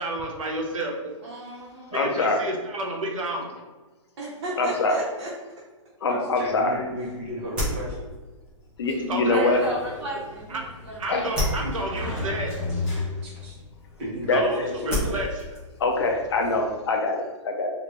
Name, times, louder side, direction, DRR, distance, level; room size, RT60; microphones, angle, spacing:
voice 1, 0.0-1.1 1.9-3.5 9.1-9.6 10.5-10.6 11.0-12.5 14.3-15.3, right 1 dB, 85° right, 1 dB, 0.8 m, -30 dB
voice 2, 1.2-2.0 4.2-5.3 9.2-11.6, right 1 dB, 60° right, -7 dB, 1.0 m, -35 dB
voice 3, 1.9-2.4 4.6-5.0 6.0-6.8 8.8-9.6 11.1-11.3 14.3-14.4 15.8-17.7, left 3 dB, 55° left, 1 dB, 0.5 m, -24 dB
voice 4, 6.1-8.1 13.2-13.6 14.0-15.1, equal, 25° right, -5 dB, 0.9 m, -34 dB
sound 1, 6.4-16.7, left 1 dB, 5° right, 0.5 m, -35 dB
Sliding door, 8.8-13.5, left 2 dB, 25° left, 1.1 m, -34 dB
3.0 x 2.4 x 3.3 m, 1.2 s
hypercardioid pair, 175°, 17 cm